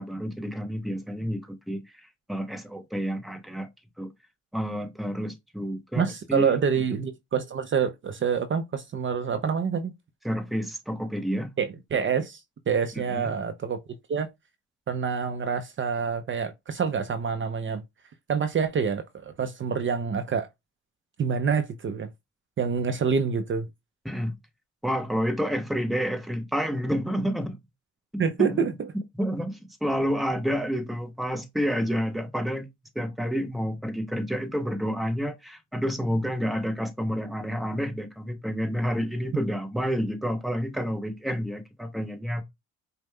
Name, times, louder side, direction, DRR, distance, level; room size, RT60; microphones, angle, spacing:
voice 1, 0.0-3.7 4.0-4.1 4.5-6.6 10.2-11.5 12.9-13.3 24.0-24.4 24.8-27.6 28.1-28.7 29.1-32.7 32.9-42.4, equal, ahead, 0.8 m, -29 dB
voice 2, 6.0-9.9 11.6-12.4 12.7-13.8 14.1-14.3 14.9-17.8 18.3-20.5 21.2-22.1 22.6-23.7 28.2-28.7, right 6 dB, 40° right, 0.6 m, -27 dB
5.1 x 2.2 x 3.2 m
cardioid pair, 90°, 30 cm